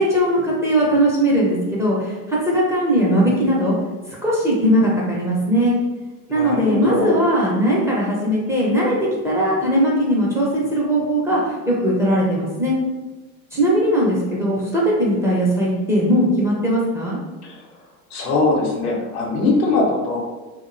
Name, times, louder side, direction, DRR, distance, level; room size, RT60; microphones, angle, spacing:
voice 1, 0.0-3.8 4.1-5.7 6.3-12.8 13.5-17.2, equal, 5° right, -6 dB, 0.6 m, -19 dB
voice 2, 6.3-7.2 17.4-17.6 18.1-20.2, left 3 dB, 75° left, -2 dB, 0.9 m, -21 dB
2.5 x 2.1 x 2.5 m, 1.2 s
hypercardioid pair, 85°, 44 cm